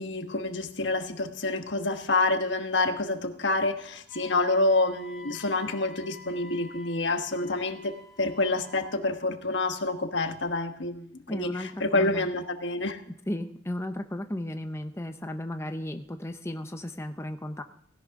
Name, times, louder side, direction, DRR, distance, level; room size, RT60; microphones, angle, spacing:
voice 1, 0.0-13.0, left 2 dB, 75° left, 7 dB, 1.3 m, -28 dB
Wind instrument woodwind instrument, 4.1-8.9, left 2 dB, ahead, 1.6 m, -49 dB
voice 2, 11.3-12.3 13.3-17.6, left 1 dB, 15° left, 7 dB, 0.6 m, -35 dB
16.5 x 11.0 x 3.7 m, 0.65 s
head